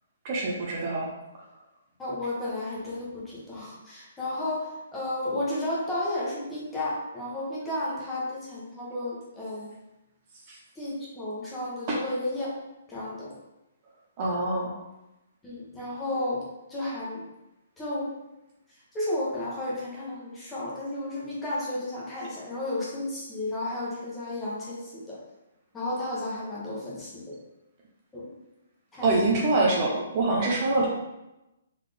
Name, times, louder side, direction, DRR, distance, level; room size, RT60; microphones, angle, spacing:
voice 1, 0.2-1.1 10.5-10.6 11.9-12.0 14.2-14.7 29.0-30.9, right 2 dB, 30° right, -3 dB, 0.7 m, -25 dB
voice 2, 2.0-9.7 10.7-12.5 12.9-13.3 15.4-16.4 16.7-17.2 17.8-18.1 18.9-25.2 25.7-27.4 28.1-28.3 28.9-29.2, left 1 dB, 10° left, -7 dB, 1.0 m, -32 dB
4.0 x 3.5 x 3.4 m, 0.95 s
hypercardioid pair, 170°, 0 cm